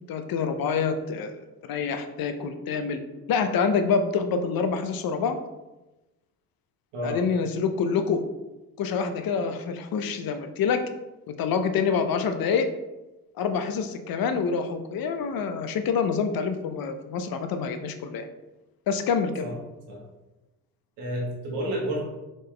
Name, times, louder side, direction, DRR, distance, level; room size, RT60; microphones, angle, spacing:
voice 1, 0.1-1.4 1.7-3.0 3.3-5.4 7.0-8.2 8.8-10.8 11.3-12.7 13.4-18.3 18.9-19.5, left 5 dB, 60° left, 8 dB, 0.7 m, -26 dB
voice 2, 21.0-22.0, right 1 dB, 90° right, -2 dB, 1.3 m, -30 dB
4.0 x 3.5 x 3.3 m, 1.0 s
supercardioid pair, 65°, 41 cm